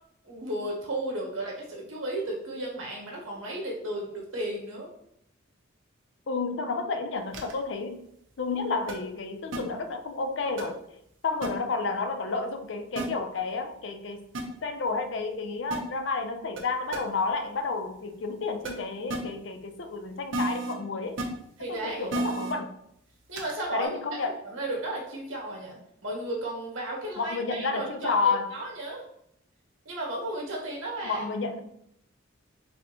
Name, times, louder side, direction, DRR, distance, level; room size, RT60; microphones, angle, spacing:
voice 1, 0.2-4.9 21.6-22.1 23.3-23.9 24.4-29.0 29.8-31.2, right 1 dB, 85° right, -3 dB, 1.4 m, -34 dB
voice 2, 6.3-8.0 8.4-10.8 11.2-14.3 14.6-21.2 21.7-22.7 23.7-24.4 27.2-28.5 31.0-31.6, left 4 dB, 65° left, 7 dB, 0.5 m, -31 dB
sound 1, 7.3-7.5 8.9-9.0 9.5-9.6 10.6-10.7 11.4-11.5 13.0-13.1 14.3-14.4 15.7-15.8 16.6-16.7 16.9-17.0 18.6-18.7 19.1-19.2 20.3-20.7 21.2-21.3 22.1-22.5 23.4-23.5, right 2 dB, 70° right, 0.8 m, -30 dB
4.2 x 3.5 x 2.9 m, 0.75 s
head